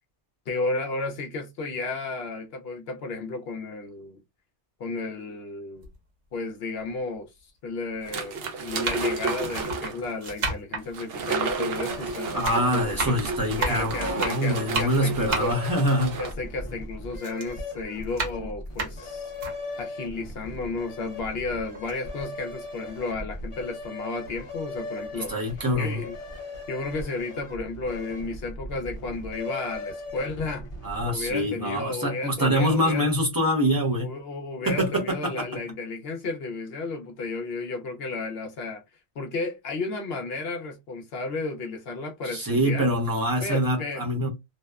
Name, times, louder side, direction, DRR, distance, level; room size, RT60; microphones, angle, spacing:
voice 1, 0.5-4.2 4.8-5.9 6.3-7.3 7.6-13.1 13.6-15.6 16.2-19.3 19.8-25.3 25.8-26.1 26.7-30.7 31.0-33.1 34.0-38.8 39.2-42.9 43.4-44.0, left 3 dB, 65° left, 0.8 m, -33 dB
sound 1, 5.8-5.9 6.8-6.9 7.9-8.1 8.6-12.0 12.3-16.8 17.2-19.6 20.1-20.2 20.5-21.4 21.7-21.9, right 3 dB, 90° right, 1.2 m, -33 dB
sound 2, 8.0-10.1 10.9-16.3, right 4 dB, 65° right, 0.8 m, -32 dB
sound 3, 11.9-31.3, left 1 dB, 35° left, 0.7 m, -39 dB
voice 2, 12.3-16.2 25.1-26.0 30.8-34.1 34.7-35.6 42.2-44.3, equal, 25° right, 0.6 m, -25 dB
2.8 x 2.1 x 2.2 m
omnidirectional pair, 1.2 m